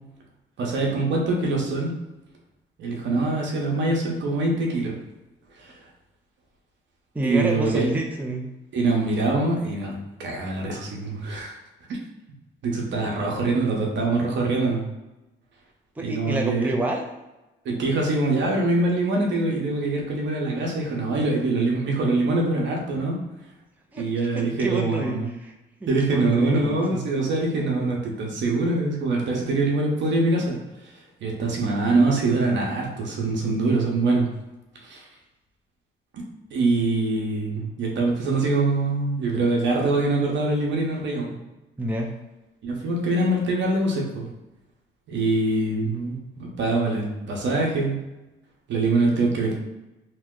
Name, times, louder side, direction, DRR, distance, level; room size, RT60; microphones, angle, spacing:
voice 1, 0.6-1.9 2.8-5.0 5.5-5.8 7.2-7.9 8.7-9.9 10.2-11.6 11.9-12.0 12.6-14.9 16.0-16.7 17.6-23.2 24.0-25.3 25.9-30.6 30.8-34.3 34.8-35.1 36.1-36.2 36.5-41.3 42.6-44.3 45.1-48.0 48.7-49.5, right 2 dB, 70° right, -1 dB, 0.9 m, -24 dB
voice 2, 7.1-8.5 16.0-17.1 23.9-24.0 24.3-25.5 25.8-27.0 41.8-42.1, right 1 dB, 10° right, 2 dB, 0.4 m, -28 dB
3.0 x 2.1 x 3.7 m, 1.0 s
cardioid pair, 90°, 20 cm